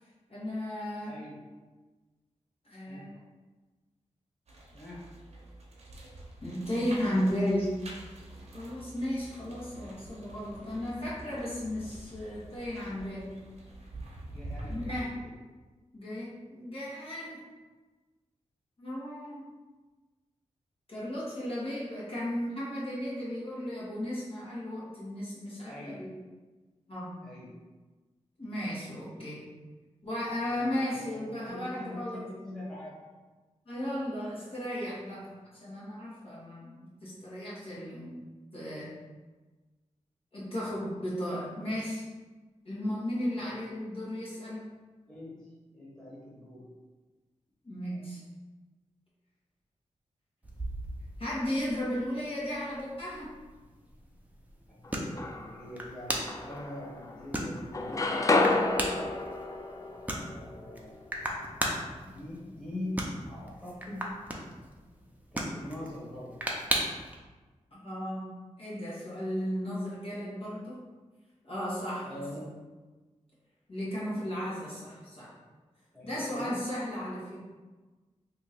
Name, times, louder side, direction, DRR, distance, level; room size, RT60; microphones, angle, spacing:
voice 1, 0.3-1.2 2.6-3.1 6.4-7.7 8.5-13.4 14.7-15.1 15.9-17.5 18.8-19.4 20.9-26.1 26.9-27.3 28.4-29.5 30.0-32.2 33.7-38.2 38.5-39.0 40.3-42.0 42.6-44.6 47.6-48.2 51.2-53.4 67.7-68.3 68.6-70.8 71.4-72.1 73.7-75.3 76.0-77.4, equal, 50° left, -8 dB, 1.4 m, -35 dB
voice 2, 1.1-1.4 2.9-3.1 4.7-5.0 7.0-7.3 14.3-15.3 25.6-26.0 27.2-27.5 30.5-32.9 43.4-43.6 45.1-45.5 45.7-46.6 54.7-59.1 60.2-61.0 62.0-64.1 65.3-66.3 72.0-72.5 75.9-76.6, left 1 dB, 5° left, -7 dB, 1.3 m, -43 dB
sound 1, 4.5-15.0, right 1 dB, 60° right, 0.7 m, -46 dB
sound 2, 50.4-67.2, right 1 dB, 15° right, 0.6 m, -38 dB
sound 3, 54.8-55.7 56.3-57.3 57.6-61.5, left 2 dB, 25° left, 0.4 m, -30 dB
2.8 x 2.5 x 4.2 m, 1.3 s
cardioid pair, 60°, 12 cm